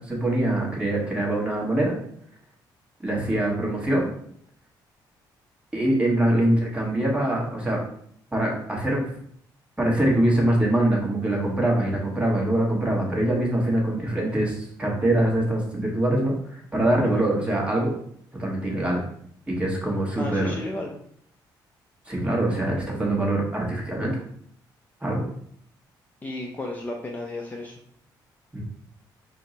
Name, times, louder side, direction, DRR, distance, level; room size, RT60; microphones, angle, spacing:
voice 1, 0.0-2.0 3.0-4.1 5.7-7.8 8.3-9.0 9.8-17.9 18.4-19.0 19.5-20.5 22.1-24.2 25.0-25.2 28.5-28.6, right 1 dB, 15° right, -2 dB, 1.2 m, -23 dB
voice 2, 20.2-20.9 26.2-27.8, left 2 dB, 20° left, 0 dB, 0.5 m, -33 dB
4.3 x 2.1 x 3.8 m, 0.65 s
cardioid pair, 115°, 8 cm